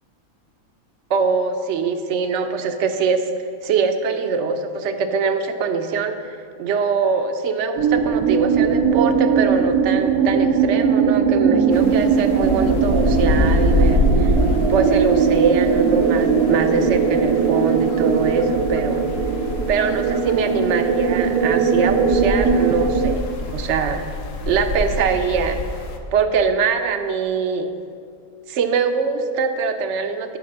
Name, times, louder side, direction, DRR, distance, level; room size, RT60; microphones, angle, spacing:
voice 1, 1.1-3.3 3.6-6.1 6.6-14.3 14.7-19.1 19.7-24.1 24.4-25.6 26.1-27.7 28.5-30.4, right 5 dB, 60° right, 8 dB, 0.9 m, -22 dB
sound 1, 7.8-23.1, right 6 dB, 90° right, 1.1 m, -19 dB
sound 2, 11.7-26.0, left 2 dB, 65° left, 1.1 m, -26 dB
10.5 x 4.8 x 6.5 m, 2.4 s
omnidirectional pair, 1.5 m